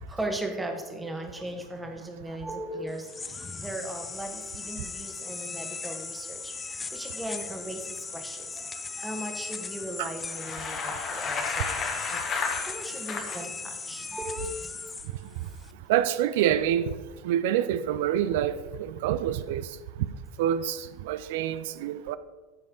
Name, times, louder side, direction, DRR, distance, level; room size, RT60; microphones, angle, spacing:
voice 1, 0.1-3.1 3.6-6.5 6.9-12.3 12.6-14.8, right 1 dB, 10° right, 3 dB, 1.5 m, -37 dB
sound 1, 2.9-15.7, left 4 dB, 20° left, 0.5 m, -38 dB
Bicycle, 10.2-13.5, left 5 dB, 35° left, 1.4 m, -32 dB
voice 2, 15.9-16.9 17.2-19.7 20.4-22.2, right 11 dB, 60° right, 14 dB, 0.5 m, -26 dB
14.0 x 5.2 x 3.9 m, 1.3 s
figure-of-eight pair, 80°, 0 cm